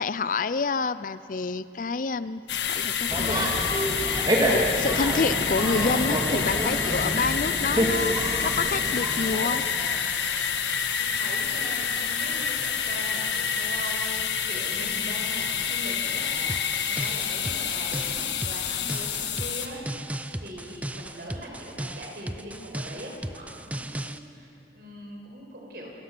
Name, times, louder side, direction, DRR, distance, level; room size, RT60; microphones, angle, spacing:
voice 1, 0.0-2.4 2.7-3.5 4.4-8.1 8.4-9.6, left 4 dB, 45° left, 15 dB, 0.4 m, -28 dB
sound 1, 2.5-19.7, left 7 dB, 80° left, 1.4 m, -28 dB
sound 2, 3.1-10.0, equal, 25° right, 2.7 m, -28 dB
voice 2, 11.0-14.2 14.5-16.5 16.9-19.9 20.4-25.9, right 1 dB, 55° right, 0 dB, 5.0 m, -40 dB
sound 3, 16.5-24.2, right 1 dB, 10° right, 0.5 m, -36 dB
27.5 x 19.5 x 6.0 m, 2.7 s
head